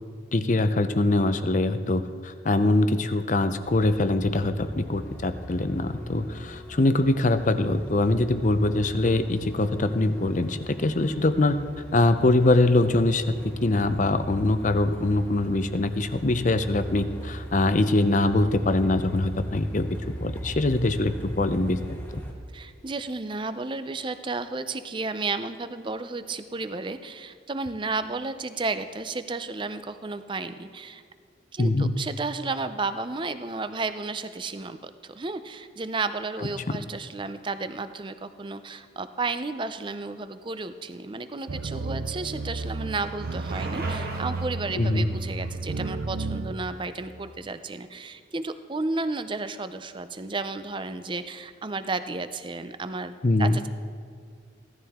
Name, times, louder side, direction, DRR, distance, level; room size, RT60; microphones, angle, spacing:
voice 1, 0.3-11.6 11.9-13.3 13.6-19.9 20.2-21.8 31.6-32.0 36.7-36.8 44.8-45.1 53.2-53.6, left 2 dB, 40° left, 11 dB, 0.6 m, -23 dB
Truck, 3.6-22.3, right 1 dB, 10° left, 1.6 m, -40 dB
voice 2, 22.5-31.0 31.5-53.1 53.4-53.7, right 3 dB, 25° right, 11 dB, 0.5 m, -32 dB
Bicycle, 41.2-47.2, right 2 dB, 50° right, 1.5 m, -42 dB
sound 1, 41.5-46.5, right 3 dB, 90° right, 0.7 m, -32 dB
16.5 x 13.0 x 3.7 m, 2.3 s
head